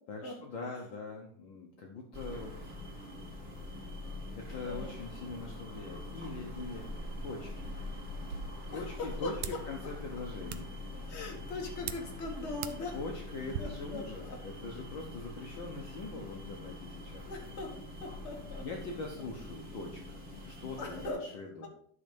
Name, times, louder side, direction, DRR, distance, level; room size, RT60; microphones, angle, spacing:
voice 1, 0.1-2.7 4.4-6.9 7.2-7.7 8.7-10.7 12.9-17.3 18.6-20.2 20.4-21.7, left 3 dB, 70° left, 0 dB, 1.1 m, -42 dB
sound 1, 2.1-21.1, left 2 dB, 20° right, 1.5 m, -44 dB
voice 2, 4.6-5.0 8.7-9.3 10.9-13.0 13.6-14.4 17.2-18.7 20.8-21.2 21.6-21.7, left 2 dB, 30° left, 0 dB, 1.4 m, -41 dB
sound 2, 8.1-13.6, right 9 dB, 75° right, 1.5 m, -45 dB
12.0 x 4.2 x 5.3 m, 0.64 s
omnidirectional pair, 3.5 m